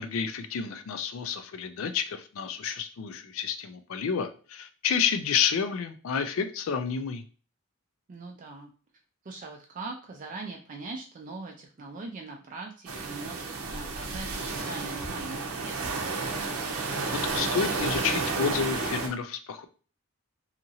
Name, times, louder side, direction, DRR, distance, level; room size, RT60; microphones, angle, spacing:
voice 1, 0.0-7.2 17.1-19.7, left 6 dB, 65° left, 9 dB, 0.4 m, -30 dB
voice 2, 8.1-8.7 9.2-16.0, right 3 dB, 35° right, 1 dB, 0.3 m, -41 dB
sound 1, 12.9-19.1, right 4 dB, 80° right, 0.6 m, -31 dB
2.8 x 2.5 x 2.7 m, 0.38 s
head